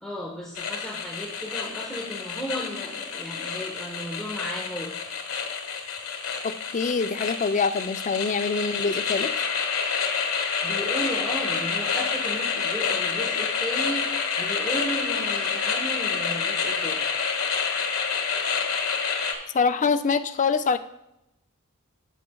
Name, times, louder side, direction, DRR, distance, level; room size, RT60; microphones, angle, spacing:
voice 1, 0.0-5.0 10.6-17.0, equal, 5° left, -4 dB, 1.1 m, -34 dB
sound 1, 0.5-19.3, left 6 dB, 85° left, 1.3 m, -28 dB
voice 2, 6.4-9.3 19.5-20.8, left 5 dB, 35° left, 9 dB, 0.4 m, -25 dB
14.5 x 6.1 x 2.3 m, 0.85 s
head